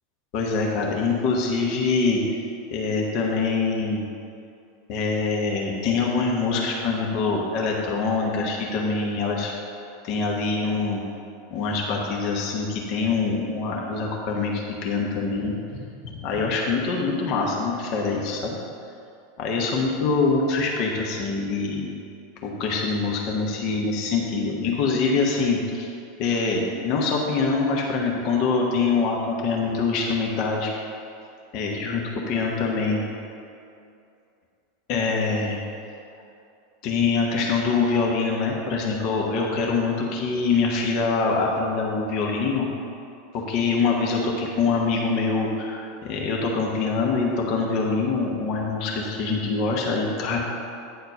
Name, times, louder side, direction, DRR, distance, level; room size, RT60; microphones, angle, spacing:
voice 1, 0.3-2.2 2.7-4.0 4.9-9.5 10.0-11.0 11.5-15.8 16.0-18.6 19.4-21.9 22.4-25.9 26.2-30.7 31.5-33.0 34.9-35.6 36.8-42.7 43.3-50.4, left 4 dB, 45° left, -1 dB, 1.1 m, -24 dB
9.5 x 4.3 x 6.6 m, 2.5 s
figure-of-eight pair, 85°, 0 cm